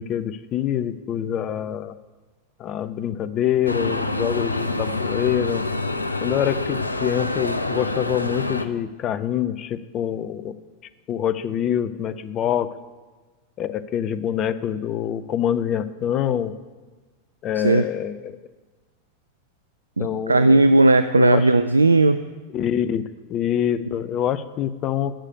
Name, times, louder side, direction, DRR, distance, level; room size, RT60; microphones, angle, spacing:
voice 1, 0.0-1.9 2.6-5.6 6.2-10.5 11.1-12.7 13.6-16.5 17.4-18.4 20.0-20.6 21.2-21.4 22.5-25.1, left 10 dB, 30° left, 14 dB, 0.5 m, -25 dB
sound 1, 3.7-8.6, left 2 dB, 80° left, 0.5 m, -26 dB
voice 2, 17.6-17.9 20.0-22.2, right 2 dB, 80° right, 11 dB, 0.3 m, -16 dB
8.9 x 6.5 x 8.5 m, 1.3 s
figure-of-eight pair, 90°, 0 cm